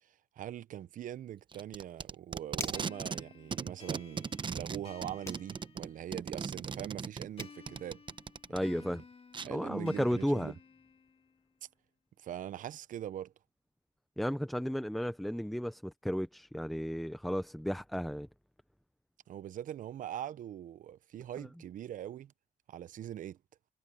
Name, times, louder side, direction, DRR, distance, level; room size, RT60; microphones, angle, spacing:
voice 1, 0.0-8.0 8.5-8.9 9.4-10.5 12.2-13.3 19.3-22.3 22.7-23.4, right 11 dB, 50° right, 0.8 m, -42 dB
Packing tape duct tape, 1.5-3.2 3.5-8.6 9.3-9.5, right 5 dB, 30° right, 1.0 m, -38 dB
sound 1, 2.5-3.0 5.2-5.5 7.0-7.1 7.4-7.6, left 3 dB, 15° left, 1.7 m, -43 dB
sound 2, 2.7-6.4 7.4-11.4, left 5 dB, 35° left, 1.7 m, -55 dB
voice 2, 8.5-9.0 9.5-10.5 14.2-18.3 21.4-21.5, equal, ahead, 0.7 m, -33 dB
cardioid pair, 110°, 17 cm